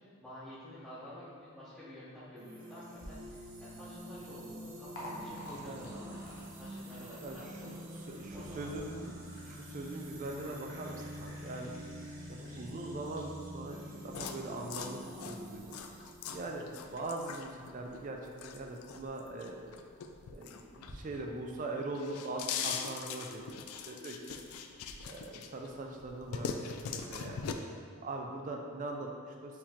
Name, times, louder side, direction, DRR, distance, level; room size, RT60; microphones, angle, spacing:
voice 1, 0.2-6.3 6.6-8.0 8.3-9.0 16.3-16.4 27.9-28.1, left 1 dB, 5° left, -15 dB, 0.8 m, -50 dB
sound 1, 2.4-17.1, equal, 60° right, 0.7 m, -47 dB
Liquid, 2.9-20.9, equal, 65° left, 0.8 m, -54 dB
voice 2, 7.2-9.1 9.5-11.7 12.3-13.8 14.0-19.7 20.3-23.6 23.9-24.4 25.0-27.4 28.0-29.6, right 2 dB, 35° right, 2 dB, 0.3 m, -42 dB
sound 2, 14.1-21.2 21.6-25.7 26.0-27.5, left 6 dB, 80° left, 0.3 m, -41 dB
4.5 x 2.9 x 3.5 m, 2.2 s
head